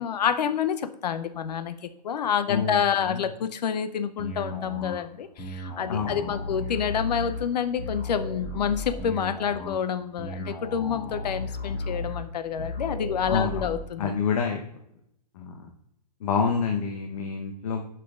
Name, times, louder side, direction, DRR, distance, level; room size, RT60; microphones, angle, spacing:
voice 1, 0.0-1.8 2.0-14.2, left 8 dB, 75° left, 11 dB, 0.6 m, -28 dB
voice 2, 2.5-3.3 5.9-6.5 13.3-14.6 15.4-15.7 16.2-17.8, left 5 dB, 60° left, 2 dB, 0.9 m, -28 dB
sound 1, 4.2-13.8, left 2 dB, 25° left, 1.6 m, -35 dB
11.5 x 5.9 x 2.4 m, 0.77 s
hypercardioid pair, 150°, 21 cm